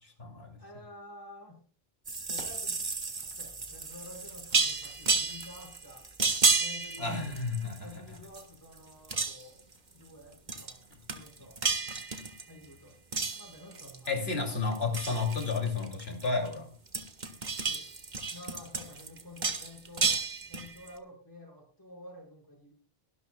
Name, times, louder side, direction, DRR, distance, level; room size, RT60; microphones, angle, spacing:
voice 1, 0.0-0.6 7.0-7.9 14.1-16.7, left 4 dB, 75° left, 4 dB, 3.0 m, -32 dB
voice 2, 0.6-1.7 2.3-2.8 3.2-6.1 6.6-7.2 7.8-9.6 9.9-10.8 11.1-11.6 12.5-13.0 13.4-14.3 17.6-17.9 18.3-20.2 20.5-22.7, left 1 dB, 20° left, -2 dB, 5.8 m, -50 dB
sound 1, 2.1-7.9 8.2-8.8 9.0-9.6 10.5-10.8 11.1-12.6 13.1-14.2 14.5-16.5 16.9-20.9, right 4 dB, 45° right, 1.7 m, -31 dB
23.0 x 12.5 x 2.3 m, 0.36 s
omnidirectional pair, 1.0 m